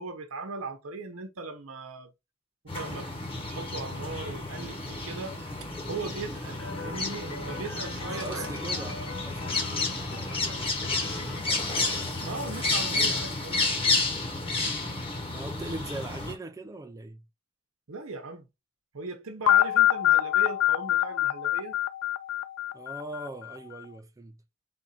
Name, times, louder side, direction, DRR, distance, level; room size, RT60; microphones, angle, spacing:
voice 1, 0.0-2.1 2.6-3.1 3.4-8.5 12.2-13.6 17.9-18.5 18.9-21.8, right 3 dB, 75° right, 0.9 m, -38 dB
sound 1, 2.7-16.3, left 3 dB, 25° left, 1.2 m, -31 dB
sound 2, 6.6-13.2, left 3 dB, 80° left, 1.4 m, -43 dB
voice 2, 8.1-11.8 15.3-17.2 22.7-24.4, right 2 dB, 15° right, 0.4 m, -41 dB
sound 3, 19.5-23.4, left 14 dB, 65° left, 0.3 m, -24 dB
3.8 x 2.6 x 4.2 m
head